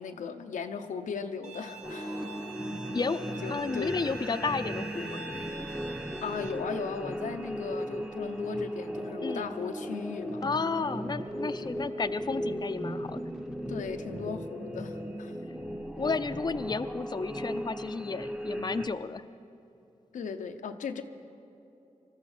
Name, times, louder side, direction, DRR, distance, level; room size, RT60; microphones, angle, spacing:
voice 1, 0.0-2.3 3.4-4.0 6.2-10.4 11.6-11.8 13.7-15.3 20.1-21.0, left 6 dB, 90° left, 5 dB, 0.8 m, -37 dB
Bowed string instrument, 1.4-6.5, right 2 dB, 50° right, 3.4 m, -45 dB
sound 1, 1.8-18.9, equal, 5° right, 0.9 m, -36 dB
voice 2, 3.5-5.2 9.2-9.5 10.4-13.2 16.0-19.2, left 4 dB, 35° left, 9 dB, 0.6 m, -32 dB
20.5 x 13.0 x 4.9 m, 2.9 s
cardioid pair, 55°, 13 cm